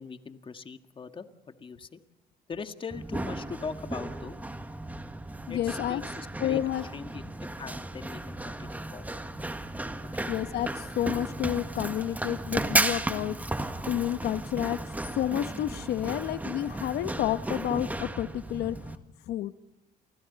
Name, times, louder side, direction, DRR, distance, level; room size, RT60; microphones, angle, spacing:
voice 1, 0.0-2.0 2.5-4.4 5.5-6.6 6.9-9.1 10.2-10.3, left 5 dB, 30° left, 8 dB, 1.8 m, -41 dB
Run, 2.9-18.9, right 1 dB, 10° right, 1.6 m, -34 dB
voice 2, 5.5-6.0 6.4-6.9 10.3-13.4 13.9-14.8 15.1-18.9 19.3-19.5, left 12 dB, 75° left, 13 dB, 1.1 m, -30 dB
29.5 x 24.5 x 4.1 m, 0.96 s
cardioid pair, 110°, 17 cm